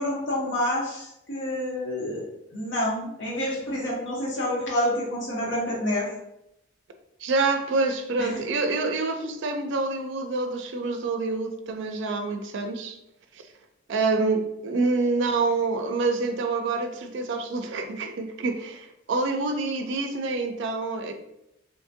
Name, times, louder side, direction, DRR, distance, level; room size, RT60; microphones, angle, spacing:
voice 1, 0.0-2.2 2.5-6.1 8.2-8.3, left 1 dB, 70° left, -5 dB, 0.8 m, -28 dB
voice 2, 7.2-13.0 13.3-13.5 13.9-21.1, right 3 dB, 70° right, 6 dB, 0.4 m, -27 dB
2.8 x 2.5 x 2.5 m, 0.83 s
head